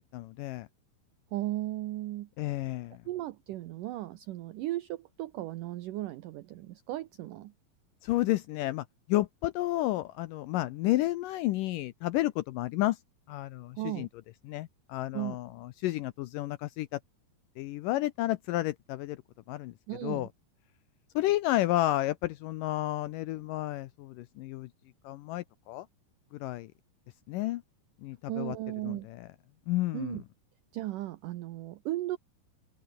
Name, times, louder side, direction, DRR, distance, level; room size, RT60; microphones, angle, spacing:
voice 1, 0.1-0.7 2.4-3.0 8.0-13.0 13.3-14.1 14.5-17.0 17.6-19.2 19.5-19.7 20.0-20.3 21.2-24.7 25.0-25.9 26.3-26.7 27.3-27.6 28.0-28.6 28.8-29.3 29.7-30.2, left 16 dB, 85° left, 1.9 m, -31 dB
voice 2, 1.3-2.3 3.1-7.5 13.8-14.1 15.1-15.4 19.9-20.3 28.3-29.1 29.9-30.2 30.7-32.2, right 15 dB, 75° right, 2.0 m, -36 dB
open air
omnidirectional pair, 4.6 m